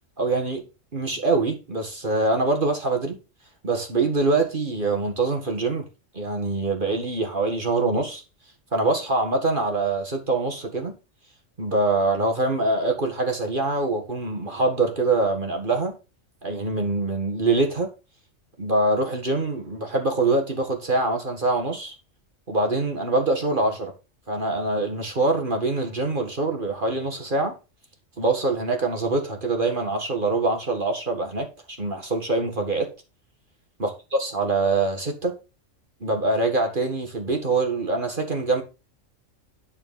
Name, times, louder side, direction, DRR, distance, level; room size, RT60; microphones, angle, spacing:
voice 1, 0.2-0.6 0.9-3.2 3.6-5.9 6.1-8.2 8.7-11.0 11.6-16.0 16.4-17.9 18.6-21.9 22.5-23.9 24.3-27.6 28.2-32.9 33.8-33.9 34.2-35.4 36.0-38.6, right 3 dB, 40° right, 2.0 m, -24 dB
10.5 x 4.3 x 6.9 m
omnidirectional pair, 1.3 m